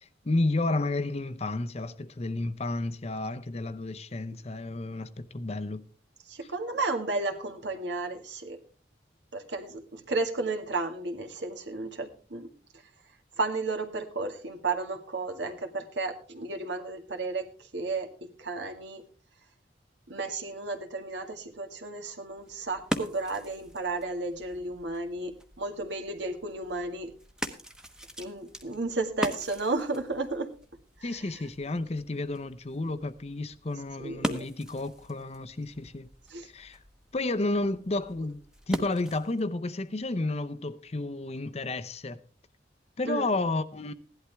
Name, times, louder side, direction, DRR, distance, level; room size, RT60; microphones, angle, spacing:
voice 1, 0.0-5.8 31.0-36.1 36.4-36.8 37.1-38.4 38.7-42.2 43.0-43.9, left 2 dB, 35° left, 0.7 m, -31 dB
voice 2, 6.3-8.6 9.3-12.5 13.4-19.0 20.1-27.1 28.2-30.5 31.0-31.3 34.0-34.4 36.3-36.5 43.1-43.3, right 3 dB, 75° right, 2.0 m, -33 dB
sound 1, 22.3-39.5, equal, 5° right, 1.0 m, -41 dB
16.5 x 11.5 x 3.4 m
head